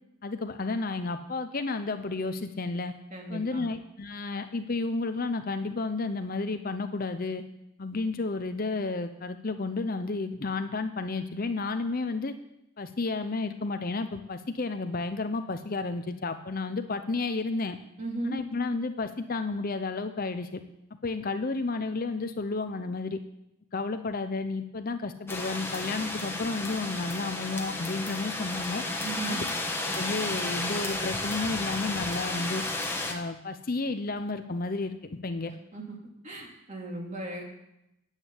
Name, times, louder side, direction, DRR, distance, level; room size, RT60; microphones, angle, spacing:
voice 1, 0.2-2.9 3.3-7.4 7.8-12.3 12.8-17.8 18.3-20.6 21.0-23.2 23.7-28.8 29.3-29.5 29.8-32.6 33.1-35.5, left 3 dB, 40° left, 9 dB, 0.6 m, -32 dB
voice 2, 3.1-3.7 18.0-18.4 29.0-29.4 35.5-36.0 36.2-37.4, right 2 dB, 30° right, 0 dB, 2.6 m, -36 dB
sound 1, 25.3-33.1, left 2 dB, 10° left, 1.2 m, -33 dB
10.0 x 8.3 x 8.3 m, 0.85 s
head